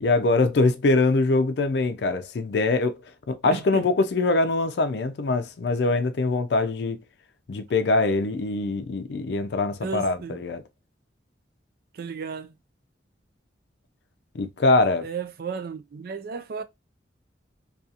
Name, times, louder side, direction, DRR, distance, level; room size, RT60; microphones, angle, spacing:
voice 1, 0.0-3.0 3.3-7.0 7.5-10.6 14.3-15.1, left 3 dB, 70° left, 0.4 m, -23 dB
voice 2, 3.5-3.8 9.8-10.4 11.9-12.5 15.0-16.6, right 5 dB, 55° right, 0.4 m, -34 dB
2.7 x 2.3 x 2.4 m
head